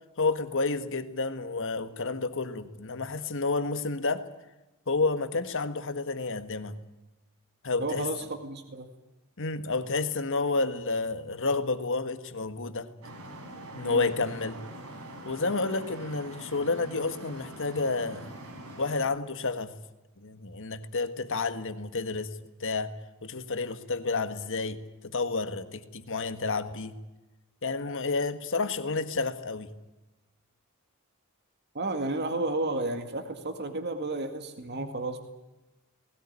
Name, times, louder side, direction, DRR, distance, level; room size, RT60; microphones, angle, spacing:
voice 1, 0.2-4.2 4.9-6.8 7.6-8.1 9.4-12.9 13.7-14.6 15.3-18.2 18.8-19.7 20.2-22.3 22.6-22.9 23.2-24.8 25.0-27.0 27.6-29.7, left 3 dB, 60° left, 10 dB, 1.7 m, -30 dB
voice 2, 7.8-8.9 13.8-14.1 31.7-35.2, right 2 dB, 50° right, 6 dB, 2.0 m, -32 dB
Traffic noise roadway noise, 13.0-19.0, right 1 dB, 75° right, 4.6 m, -44 dB
20.0 x 17.5 x 9.7 m, 1.0 s
head